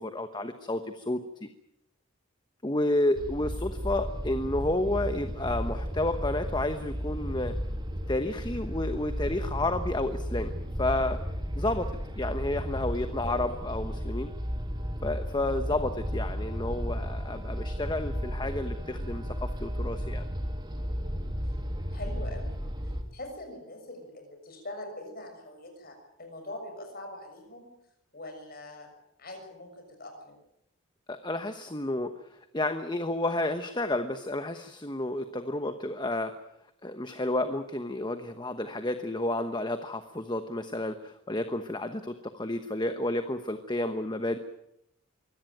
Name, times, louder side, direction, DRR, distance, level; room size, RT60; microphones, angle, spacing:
voice 1, 0.0-1.5 2.6-7.5 8.1-11.2 11.6-14.3 15.0-20.2 31.1-36.3 36.8-44.4, left 1 dB, 20° left, 9 dB, 1.1 m, -31 dB
sound 1, 3.2-23.0, equal, 20° right, 2.6 m, -34 dB
voice 2, 13.2-13.6 21.9-22.5 23.1-27.6 28.1-28.9 29.2-30.4, left 1 dB, 45° left, 4 dB, 6.7 m, -43 dB
24.0 x 17.5 x 9.1 m, 0.81 s
head